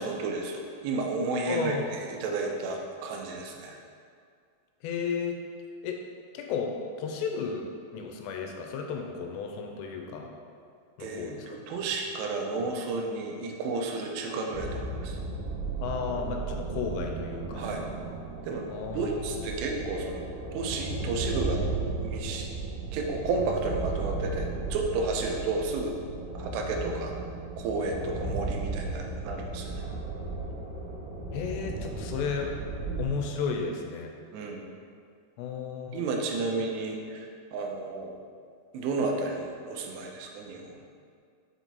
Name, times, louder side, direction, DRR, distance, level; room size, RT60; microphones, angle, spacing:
voice 1, 0.0-3.8 11.0-15.2 17.5-17.8 18.4-18.7 18.9-20.3 20.5-21.7 22.0-22.5 22.9-26.0 26.3-27.1 27.6-29.8 34.3-34.6 35.9-38.1 38.7-40.8, right 3 dB, 90° right, 1 dB, 2.9 m, -32 dB
voice 2, 1.5-1.9 4.8-5.4 5.8-6.0 6.3-7.7 7.9-10.3 11.0-11.5 15.8-17.7 18.7-19.5 31.3-32.5 33.0-34.1 35.4-36.0, left 6 dB, 85° left, 2 dB, 2.8 m, -33 dB
sound 1, 14.5-33.1, right 3 dB, 70° right, 2.3 m, -35 dB
6.7 x 4.6 x 4.0 m, 2.2 s
omnidirectional pair, 4.9 m